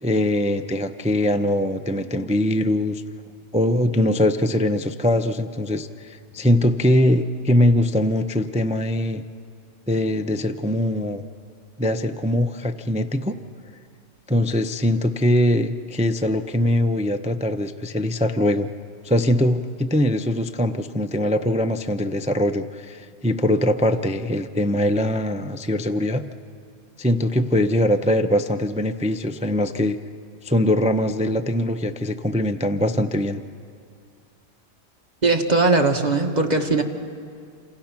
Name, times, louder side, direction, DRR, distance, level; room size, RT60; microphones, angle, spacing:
voice 1, 0.0-3.0 3.5-9.2 9.9-11.2 11.8-13.4 14.3-18.7 19.0-26.2 27.0-30.0 30.4-33.4, left 1 dB, 10° right, 9 dB, 0.3 m, -22 dB
voice 2, 35.2-36.8, right 3 dB, 30° right, 2 dB, 1.6 m, -19 dB
29.0 x 26.5 x 5.9 m, 2.3 s
omnidirectional pair, 1.4 m